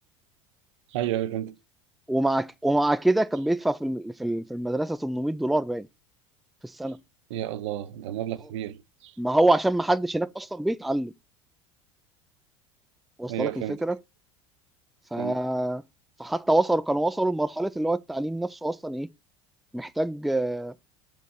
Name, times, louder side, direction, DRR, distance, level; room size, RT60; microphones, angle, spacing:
voice 1, 0.9-1.6 7.3-9.1 13.3-13.8 15.2-15.4, right 12 dB, 75° right, 0.7 m, -31 dB
voice 2, 2.1-5.9 6.6-7.0 9.2-11.1 13.2-14.0 15.1-15.8 16.2-19.1 19.7-20.7, right 1 dB, ahead, 0.4 m, -25 dB
6.9 x 4.6 x 4.5 m
hypercardioid pair, 85°, 15 cm